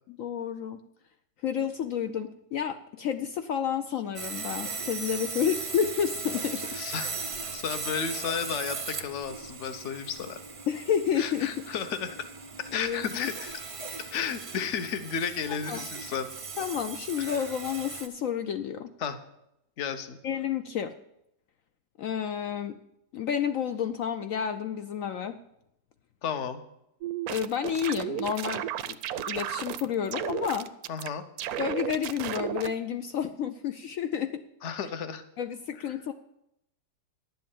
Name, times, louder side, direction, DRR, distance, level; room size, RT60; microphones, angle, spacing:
voice 1, 0.1-0.8 1.4-6.7 10.7-11.5 12.7-13.3 15.5-15.8 16.6-18.9 20.2-20.9 22.0-22.8 23.1-25.4 27.3-29.0 29.3-30.7 31.6-34.4 35.4-36.1, left 8 dB, 65° left, 9 dB, 0.8 m, -30 dB
Sawing, 4.1-18.1, right 4 dB, 50° right, 0.4 m, -38 dB
voice 2, 6.7-7.1 7.5-10.4 11.2-12.2 12.6-13.5 14.0-16.3 17.2-17.4 19.0-19.2 19.8-20.2 26.2-26.6 30.9-31.2 34.6-35.2 35.9-36.0, left 7 dB, 50° left, 9 dB, 1.1 m, -33 dB
sound 1, 27.0-29.8 30.1-31.1 31.4-32.7, right 12 dB, 70° right, 1.0 m, -33 dB
11.0 x 7.7 x 7.3 m, 0.80 s
omnidirectional pair, 1.8 m